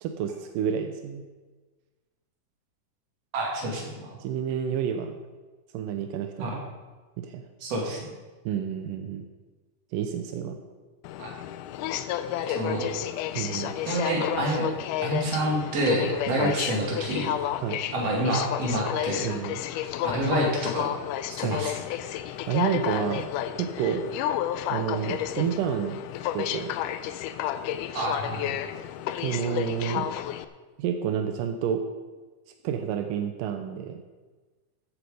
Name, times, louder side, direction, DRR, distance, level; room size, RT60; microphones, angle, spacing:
voice 1, 0.0-1.2 4.2-5.2 5.7-6.6 7.2-7.4 8.5-9.3 9.9-10.6 12.3-12.4 13.4-13.8 16.4-16.6 17.6-17.8 19.2-19.6 21.4-21.6 22.5-23.3 23.6-24.0 24.7-26.0 26.3-26.8 29.2-30.1 30.8-31.8 32.6-34.0, right 8 dB, 85° right, 6 dB, 2.4 m, -29 dB
voice 2, 3.3-4.1 6.4-6.5 7.6-8.0 11.2-11.3 12.5-12.9 13.9-14.7 15.0-17.3 17.9-19.3 20.0-20.9 21.3-21.8 27.9-28.5, right 1 dB, 50° right, -1 dB, 3.2 m, -28 dB
Aircraft, 11.0-30.5, left 11 dB, 80° left, 2.1 m, -31 dB
14.5 x 8.0 x 5.0 m, 1.3 s
omnidirectional pair, 3.8 m